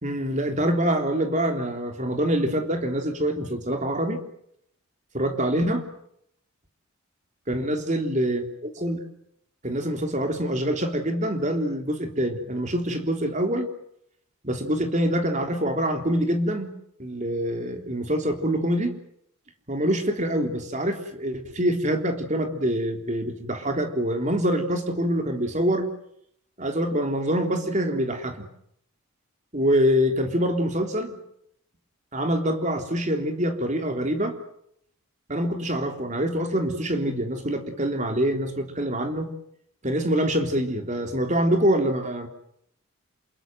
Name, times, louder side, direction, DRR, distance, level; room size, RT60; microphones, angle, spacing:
voice 1, 0.0-4.2 5.1-5.8 7.5-9.0 9.6-13.7 14.4-16.7 17.0-18.9 19.7-25.9 26.6-28.5 29.5-31.2 32.1-34.4 35.3-39.3 39.8-42.3, equal, 35° right, 5 dB, 3.6 m, -25 dB
28.5 x 21.5 x 7.9 m, 0.71 s
head